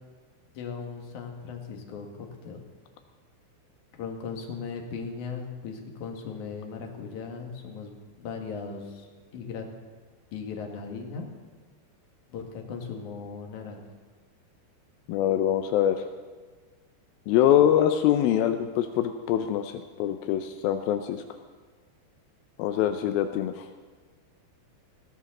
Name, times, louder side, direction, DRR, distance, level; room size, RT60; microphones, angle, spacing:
voice 1, 0.5-2.6 4.0-7.9 8.2-9.1 9.3-9.7 10.3-11.3 12.3-13.8, left 5 dB, 55° left, 2 dB, 2.7 m, -37 dB
voice 2, 15.1-16.0 17.3-19.7 20.0-21.2 22.6-23.7, left 11 dB, 85° left, 7 dB, 2.1 m, -24 dB
19.5 x 16.5 x 3.9 m, 1.4 s
omnidirectional pair, 5.0 m